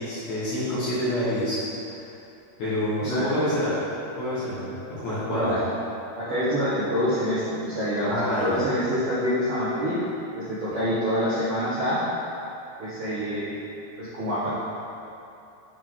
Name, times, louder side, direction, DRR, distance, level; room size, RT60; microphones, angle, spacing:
voice 1, 0.0-2.0 2.6-3.7 4.2-4.7 5.0-5.6 8.1-8.6, left 1 dB, 55° left, -14 dB, 2.5 m, -27 dB
voice 2, 5.3-5.6 6.2-9.9 10.3-12.0 12.8-13.5 14.0-14.5, equal, 75° right, -14 dB, 1.3 m, -26 dB
8.0 x 4.8 x 3.7 m, 2.7 s
omnidirectional pair, 4.8 m